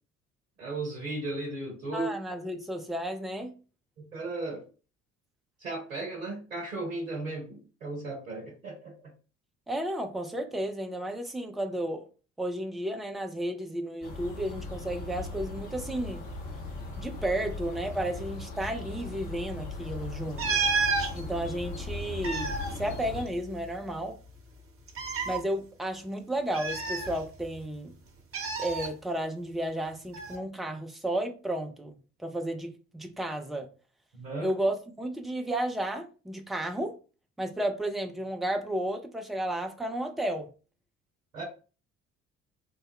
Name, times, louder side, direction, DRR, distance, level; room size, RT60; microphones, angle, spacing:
voice 1, 0.6-2.1 4.1-4.6 5.6-8.9 34.1-34.5 41.3-41.4, right 2 dB, 80° right, 0.7 m, -35 dB
voice 2, 1.9-3.6 9.7-12.1 12.4-16.2 17.0-20.6 21.1-24.2 25.3-27.9 28.6-33.7 34.4-36.9 37.4-40.5, right 1 dB, ahead, 0.3 m, -33 dB
sound 1, 14.0-23.2, left 3 dB, 50° left, 1.0 m, -39 dB
sound 2, 20.4-21.1 22.0-23.7 24.0-24.1 24.9-25.4 26.5-27.6 28.3-28.9 30.1-30.4, right 4 dB, 35° right, 0.9 m, -30 dB
3.1 x 2.1 x 3.5 m
figure-of-eight pair, 50°, 39 cm